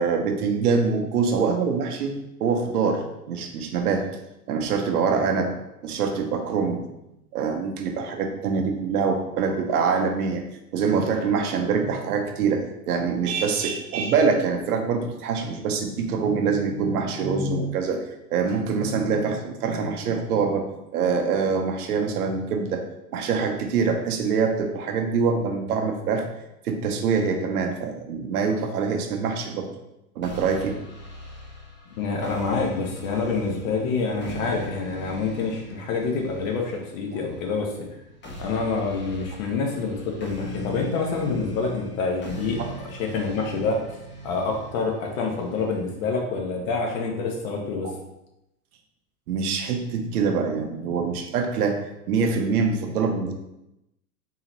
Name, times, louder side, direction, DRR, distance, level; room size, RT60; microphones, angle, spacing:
voice 1, 0.0-4.1 4.5-5.5 5.8-6.8 7.3-10.4 10.7-18.0 18.3-20.7 20.9-22.8 23.1-26.2 26.6-29.7 30.2-30.8 42.6-42.7 49.3-51.8 52.1-53.3, right 5 dB, 70° right, 4 dB, 0.8 m, -24 dB
sound 1, 30.2-46.2, equal, 25° left, 1.0 m, -40 dB
voice 2, 32.0-37.7 38.4-47.9, left 4 dB, 55° left, 1 dB, 1.1 m, -27 dB
3.8 x 2.8 x 2.9 m, 0.89 s
hypercardioid pair, 100°, 47 cm